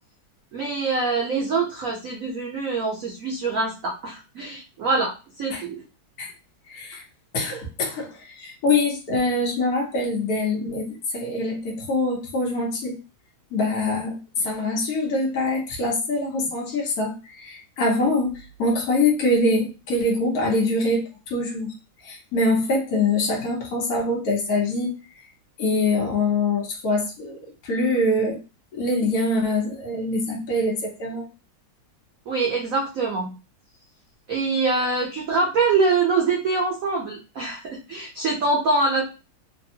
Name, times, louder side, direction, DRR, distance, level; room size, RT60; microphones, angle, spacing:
voice 1, 0.5-5.1 5.4-5.8 32.3-33.4 34.3-39.1, right 3 dB, 85° right, -1 dB, 0.7 m, -24 dB
voice 2, 6.7-7.0 7.3-13.0 13.5-21.0 21.3-21.7 22.0-24.9 25.6-27.4 27.6-28.4 28.7-31.2, left 2 dB, 55° left, -3 dB, 1.1 m, -24 dB
3.4 x 2.2 x 2.7 m, 0.30 s
omnidirectional pair, 2.3 m